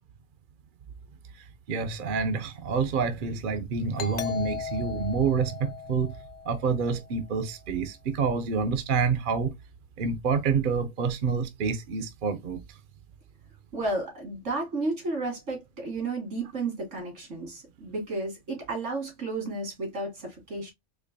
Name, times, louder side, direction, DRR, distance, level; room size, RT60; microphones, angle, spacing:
voice 1, 1.7-6.2 6.5-9.5 10.0-12.6, right 5 dB, 55° right, 0.7 m, -27 dB
Doorbell, 4.0-7.3, left 7 dB, 60° left, 0.4 m, -37 dB
voice 2, 13.7-20.7, right 2 dB, 85° right, 2.3 m, -32 dB
4.4 x 2.6 x 2.6 m
omnidirectional pair, 1.2 m